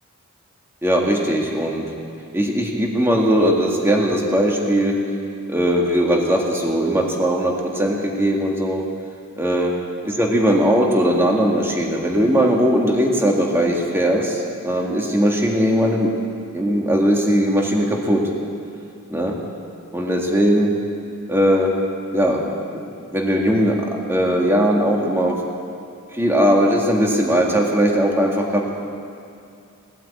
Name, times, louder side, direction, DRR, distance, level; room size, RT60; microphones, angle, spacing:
voice 1, 0.8-1.9 2.3-5.0 5.5-8.8 9.4-9.7 10.0-16.1 16.5-18.2 19.1-19.3 19.9-20.7 21.3-21.7 22.1-22.4 22.7-23.8 24.1-25.4 26.1-28.7, equal, 10° right, 0 dB, 1.8 m, -19 dB
18.5 x 9.1 x 8.4 m, 2.5 s
head